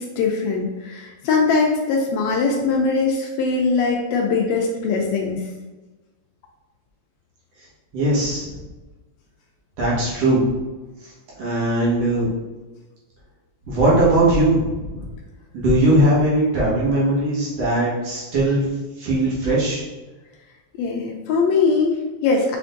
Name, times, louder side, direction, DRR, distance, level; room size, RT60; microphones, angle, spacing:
voice 1, 0.0-5.4 20.8-22.6, left 4 dB, 80° left, 0 dB, 1.7 m, -21 dB
voice 2, 7.9-8.6 9.8-10.4 11.4-12.3 13.7-15.0 15.5-19.8, right 1 dB, 65° right, -7 dB, 2.2 m, -19 dB
5.8 x 3.4 x 2.5 m, 1.2 s
omnidirectional pair, 3.3 m